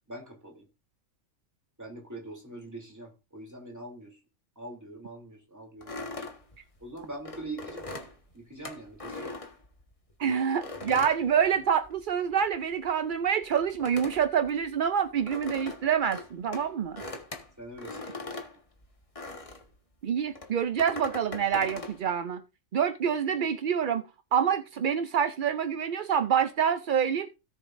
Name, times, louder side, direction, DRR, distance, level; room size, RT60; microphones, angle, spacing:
voice 1, 0.1-0.6 1.8-4.2 4.6-6.2 6.8-7.9 8.3-9.3 10.2-10.4 10.8-11.1 17.6-18.1, right 2 dB, 10° right, 3.0 m, -43 dB
sound 1, 5.8-10.1 10.6-12.1 12.3-19.7 20.3-22.0, left 2 dB, 25° left, 1.4 m, -41 dB
voice 2, 10.2-17.0 20.0-22.4 22.7-24.0 24.3-27.3, right 8 dB, 60° right, 0.5 m, -27 dB
17.5 x 6.7 x 2.6 m
omnidirectional pair, 1.4 m